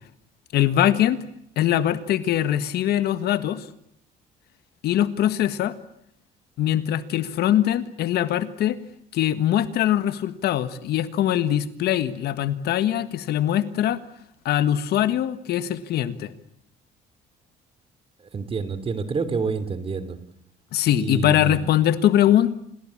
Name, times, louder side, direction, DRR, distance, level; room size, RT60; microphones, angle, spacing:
voice 1, 0.5-1.2 1.5-3.7 4.8-5.7 6.6-8.8 9.1-14.0 14.4-16.3 20.7-22.5, left 11 dB, 70° left, 13 dB, 1.6 m, -22 dB
voice 2, 18.3-20.2 20.9-21.6, right 5 dB, 35° right, 14 dB, 3.1 m, -28 dB
28.5 x 20.0 x 8.7 m, 0.75 s
cardioid pair, 110°, 17 cm